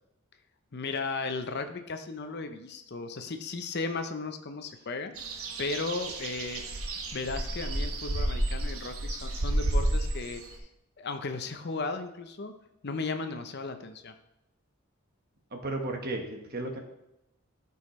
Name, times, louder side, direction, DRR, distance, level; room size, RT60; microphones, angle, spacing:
voice 1, 0.7-5.1 5.6-6.6 7.1-10.4 11.0-12.5 12.8-14.1, left 3 dB, 50° left, 8 dB, 0.7 m, -35 dB
sound 1, 5.2-10.6, right 1 dB, 75° right, 1.2 m, -31 dB
voice 2, 15.5-16.8, right 2 dB, 45° right, 3 dB, 1.3 m, -34 dB
14.0 x 5.5 x 3.2 m, 0.87 s
head